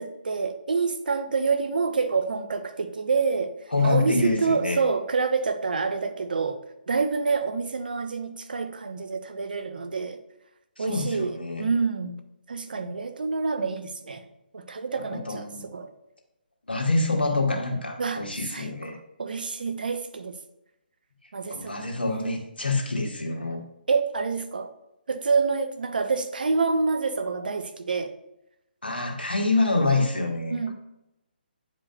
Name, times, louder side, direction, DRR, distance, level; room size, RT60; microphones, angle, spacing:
voice 1, 0.0-3.5 3.8-6.6 6.9-10.2 10.8-12.2 12.5-14.2 14.5-15.9 18.0-18.7 19.2-20.4 21.3-22.5 23.9-24.7 25.1-28.1 30.5-30.7, right 4 dB, 60° right, 8 dB, 0.7 m, -27 dB
voice 2, 3.7-4.8 10.8-11.6 15.1-15.6 16.7-19.0 21.5-23.6 28.8-30.6, left 3 dB, 80° left, 1 dB, 1.5 m, -26 dB
9.2 x 5.0 x 2.2 m, 0.88 s
figure-of-eight pair, 140°, 5 cm